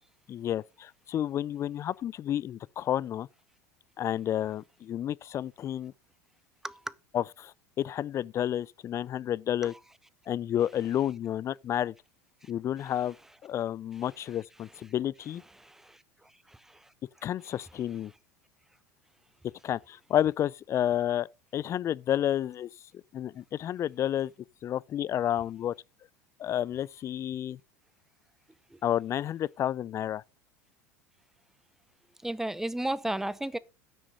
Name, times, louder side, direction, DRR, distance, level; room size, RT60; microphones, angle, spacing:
voice 1, 0.3-3.3 4.0-5.9 7.1-9.7 10.3-11.9 12.5-13.2 13.4-15.4 17.2-18.1 19.6-21.3 21.5-22.7 23.1-24.3 24.6-25.7 26.4-27.6 28.8-30.2, left 11 dB, 35° left, 0.4 m, -30 dB
voice 2, 6.6-6.9 9.6-9.7 12.4-12.5 14.7-14.8 15.6-16.9 28.7-28.8 32.2-33.6, right 1 dB, 5° right, 0.6 m, -35 dB
9.9 x 6.2 x 5.0 m
hypercardioid pair, 80°, 8 cm